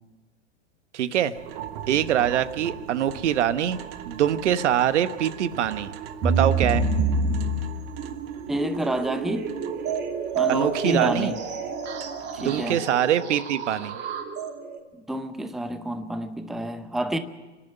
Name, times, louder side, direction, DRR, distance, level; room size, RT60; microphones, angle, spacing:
voice 1, 0.9-1.3 1.9-3.8 4.0-5.9 6.2-6.9 10.5-11.3 12.4-14.0, right 10 dB, 70° right, 1.1 m, -24 dB
sound 1, 1.3-12.8, right 9 dB, 55° right, 1.4 m, -41 dB
sound 2, 6.2-14.8, right 4 dB, 30° right, 2.8 m, -28 dB
voice 2, 8.5-9.5 10.4-11.4 12.3-12.8 15.1-17.2, right 1 dB, ahead, 0.7 m, -29 dB
25.0 x 11.0 x 9.1 m
hypercardioid pair, 120°, 37 cm